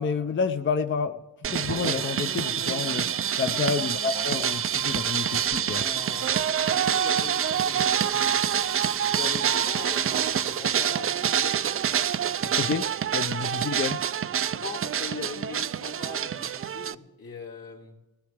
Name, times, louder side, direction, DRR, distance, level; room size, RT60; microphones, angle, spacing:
voice 1, 0.0-3.1 3.4-5.8 12.6-12.8 13.1-14.0, left 5 dB, 35° left, 8 dB, 0.6 m, -29 dB
sound 1, 1.4-16.9, right 9 dB, 40° right, 0.4 m, -26 dB
sound 2, 4.3-10.7, right 10 dB, 80° right, 0.6 m, -42 dB
voice 2, 5.6-6.3 6.7-8.8 9.1-11.6 12.4-12.8 14.5-18.0, left 5 dB, 70° left, -2 dB, 2.4 m, -41 dB
19.5 x 17.0 x 3.4 m, 1.2 s
cardioid pair, 80°, 36 cm